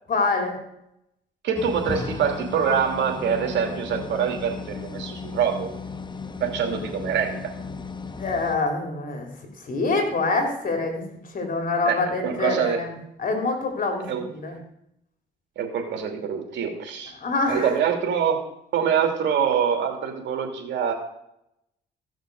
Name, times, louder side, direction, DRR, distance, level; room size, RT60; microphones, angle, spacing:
voice 1, 0.1-0.6 8.2-9.3 9.6-14.6 17.2-17.7, left 3 dB, 45° left, 3 dB, 3.9 m, -26 dB
voice 2, 1.4-5.7 6.4-7.5 11.9-12.8 14.1-14.2 15.6-17.1 17.5-18.5 18.7-20.9, right 7 dB, 75° right, 4 dB, 2.9 m, -25 dB
sound 1, 1.5-8.6, left 4 dB, 25° left, 1.2 m, -35 dB
15.0 x 6.5 x 6.5 m, 0.79 s
cardioid pair, 80°, 19 cm